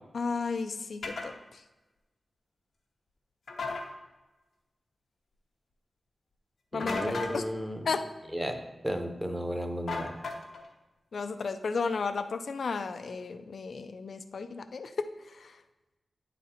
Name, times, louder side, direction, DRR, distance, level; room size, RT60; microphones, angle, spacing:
voice 1, 0.1-1.6 6.7-7.5 7.8-8.0 11.1-15.6, left 4 dB, 70° left, 10 dB, 0.4 m, -34 dB
sound 1, 1.0-1.3 3.5-3.9 6.8-7.4 9.9-10.7, left 3 dB, 90° left, 0.9 m, -35 dB
voice 2, 6.7-7.8 8.3-8.5 8.8-10.2, equal, 5° right, 5 dB, 0.8 m, -33 dB
9.2 x 4.1 x 4.3 m, 1.1 s
wide cardioid pair, 115°, 0 cm